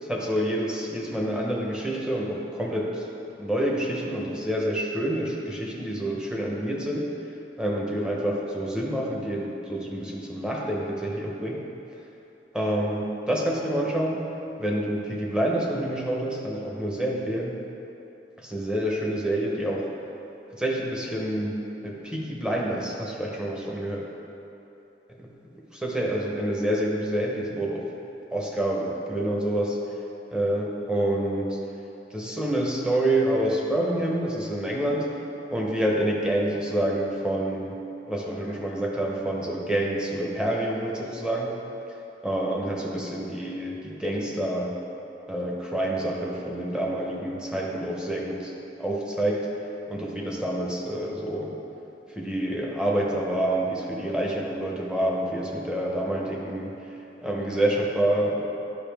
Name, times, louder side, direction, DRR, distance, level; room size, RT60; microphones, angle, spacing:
voice 1, 0.0-3.1 3.4-7.1 7.6-11.6 12.5-14.2 14.6-17.6 18.4-19.9 20.5-21.5 21.8-24.1 25.7-27.8 28.3-29.8 30.3-31.6 32.1-35.1 35.5-37.7 38.1-41.5 42.2-44.7 45.3-48.5 48.8-49.5 49.9-51.5 52.1-58.5, right 1 dB, 5° right, -2 dB, 0.8 m, -27 dB
11.0 x 5.4 x 3.5 m, 3.0 s
head